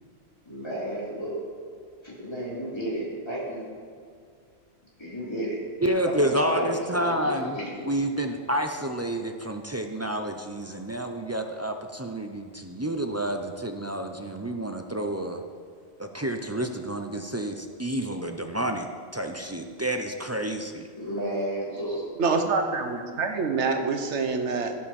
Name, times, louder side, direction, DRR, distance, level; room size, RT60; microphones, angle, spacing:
voice 1, 0.5-1.4 2.0-3.7 5.0-5.6 6.1-7.9 20.9-22.0, right 1 dB, 25° left, -7 dB, 3.0 m, -32 dB
voice 2, 5.8-7.6 7.9-15.4 16.0-18.9 19.1-20.9, right 1 dB, 25° right, 4 dB, 0.3 m, -29 dB
voice 3, 22.2-24.8, right 4 dB, 85° right, 5 dB, 1.3 m, -26 dB
16.5 x 5.6 x 4.3 m, 2.2 s
omnidirectional pair, 1.2 m